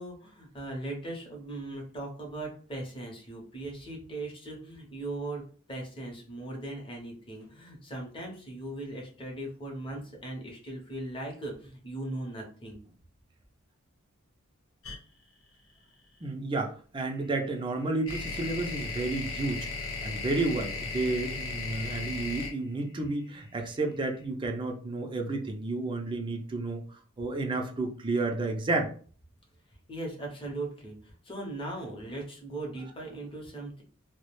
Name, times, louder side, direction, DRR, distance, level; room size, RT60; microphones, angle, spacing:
voice 1, 0.0-12.8 29.9-33.8, right 2 dB, 25° left, 0 dB, 0.7 m, -39 dB
sound 1, 14.8-15.0 17.1-24.1, left 4 dB, 75° left, 0.8 m, -36 dB
voice 2, 16.2-19.7 20.0-26.8 27.2-28.9, right 2 dB, 25° right, 3 dB, 0.4 m, -31 dB
2.3 x 2.1 x 3.0 m, 0.42 s
head